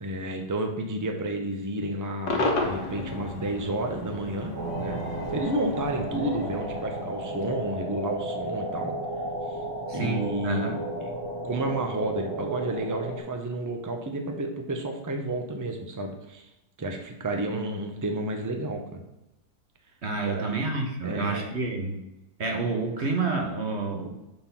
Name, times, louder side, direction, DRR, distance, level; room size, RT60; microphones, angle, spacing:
voice 1, 0.0-5.0 5.3-8.9 9.5-9.6 9.9-11.1 11.4-16.5 16.8-19.0 20.2-21.5, right 1 dB, 25° right, 4 dB, 0.4 m, -31 dB
Cheering / Crowd / Fireworks, 2.3-7.5, left 2 dB, 80° left, 1.8 m, -33 dB
sound 1, 4.5-13.2, right 1 dB, 85° right, 2.2 m, -34 dB
voice 2, 9.9-10.8 20.0-22.0 22.4-24.1, right 3 dB, 45° right, 2 dB, 1.1 m, -29 dB
6.8 x 3.8 x 5.7 m, 0.94 s
omnidirectional pair, 1.8 m